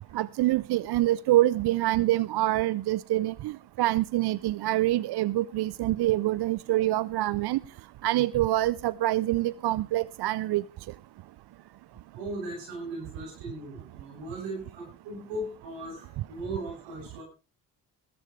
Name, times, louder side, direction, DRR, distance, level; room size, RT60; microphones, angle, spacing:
voice 1, 0.1-7.6 8.0-10.6, right 15 dB, 65° right, 0.6 m, -26 dB
voice 2, 12.1-17.2, right 1 dB, 90° right, 7.5 m, -38 dB
17.5 x 14.0 x 3.2 m
supercardioid pair, 50°, 42 cm